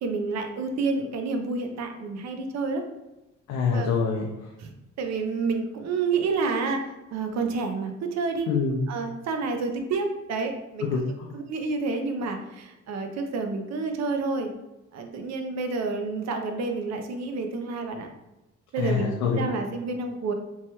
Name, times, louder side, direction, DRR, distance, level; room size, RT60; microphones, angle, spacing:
voice 1, 0.0-2.8 3.7-3.9 4.6-4.7 5.0-8.5 8.9-10.9 11.3-14.5 14.9-18.1 18.7-20.3, right 4 dB, 60° right, 5 dB, 0.5 m, -29 dB
voice 2, 3.5-4.3 8.5-8.8 10.8-11.3 18.8-19.4, left 5 dB, 90° left, 0 dB, 0.5 m, -25 dB
3.2 x 2.2 x 2.9 m, 0.97 s
cardioid pair, 90°, 30 cm